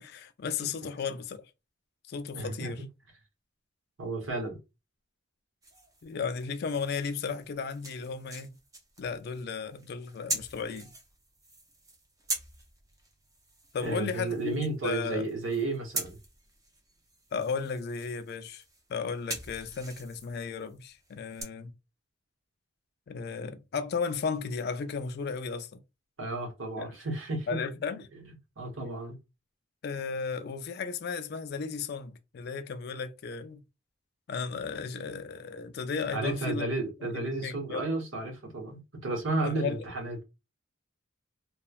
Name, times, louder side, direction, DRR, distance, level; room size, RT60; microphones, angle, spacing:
voice 1, 0.0-1.5 2.1-2.8 6.0-8.6 9.0-10.9 13.7-15.3 17.3-18.6 18.9-21.7 23.1-25.8 26.8-27.0 27.5-28.1 29.8-33.6 34.3-36.7 37.0-37.9 39.4-39.9, left 5 dB, 50° left, 0.3 m, -35 dB
voice 2, 2.3-2.9 4.0-4.6 13.8-16.2 26.2-27.6 28.6-29.2 36.1-40.2, right 2 dB, 70° right, 1.0 m, -33 dB
sound 1, 5.6-21.4, right 2 dB, 15° right, 0.5 m, -43 dB
3.0 x 2.1 x 2.3 m
head